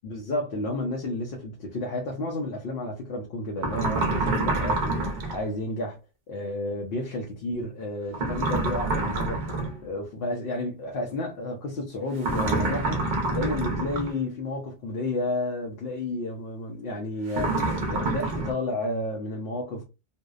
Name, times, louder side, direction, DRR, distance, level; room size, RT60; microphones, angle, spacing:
voice 1, 0.0-6.0 6.3-9.4 9.8-13.0 13.3-19.8, left 2 dB, 70° left, 0.8 m, -31 dB
sound 1, 3.6-5.4 8.1-9.8 12.2-14.2 17.3-18.5, right 2 dB, 50° right, 0.7 m, -27 dB
2.6 x 2.0 x 2.3 m
omnidirectional pair, 1.0 m